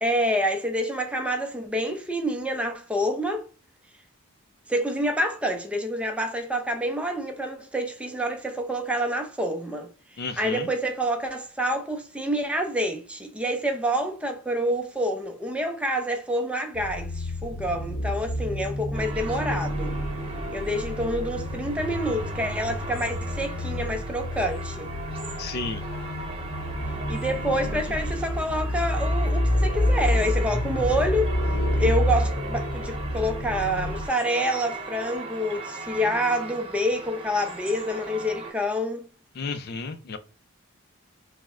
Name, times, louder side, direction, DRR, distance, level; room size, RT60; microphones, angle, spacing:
voice 1, 0.0-3.4 4.7-9.9 10.4-19.9 20.5-24.9 27.1-31.3 31.7-39.1, equal, 5° right, 0.4 m, -27 dB
voice 2, 10.2-10.7 25.4-25.8 39.4-40.2, left 4 dB, 50° left, 0.4 m, -32 dB
sound 1, 16.7-34.1, left 1 dB, 85° left, 0.7 m, -28 dB
sound 2, 18.9-38.5, right 2 dB, 25° right, 0.9 m, -38 dB
5.0 x 2.0 x 2.4 m
head